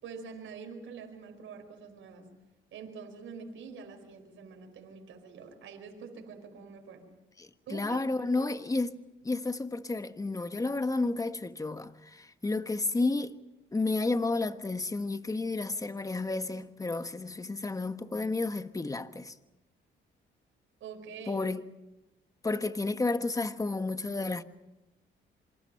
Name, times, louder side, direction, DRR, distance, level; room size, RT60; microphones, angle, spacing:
voice 1, 0.0-2.3 2.7-7.1 7.7-8.6 20.8-21.5, right 5 dB, 80° right, 5.0 m, -45 dB
voice 2, 7.4-13.4 13.7-19.3 21.3-21.6 22.4-24.4, left 3 dB, 15° left, 1.3 m, -31 dB
26.5 x 25.5 x 5.8 m
cardioid pair, 90°, 20 cm